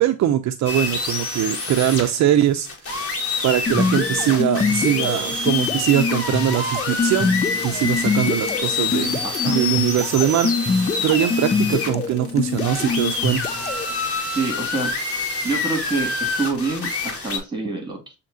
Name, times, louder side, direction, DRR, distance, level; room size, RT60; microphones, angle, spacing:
voice 1, 0.0-3.0 3.4-7.3 7.6-9.2 9.4-10.5 11.0-13.5, right 11 dB, 65° right, 7 dB, 0.6 m, -21 dB
sound 1, 0.6-17.4, left 3 dB, 50° left, 1.8 m, -27 dB
sound 2, 3.7-13.9, left 5 dB, 25° left, 0.3 m, -25 dB
voice 2, 9.2-9.6 14.3-15.0 15.4-18.1, right 3 dB, 15° right, 5 dB, 2.1 m, -27 dB
7.2 x 2.9 x 2.6 m, 0.28 s
cardioid pair, 90°, 30 cm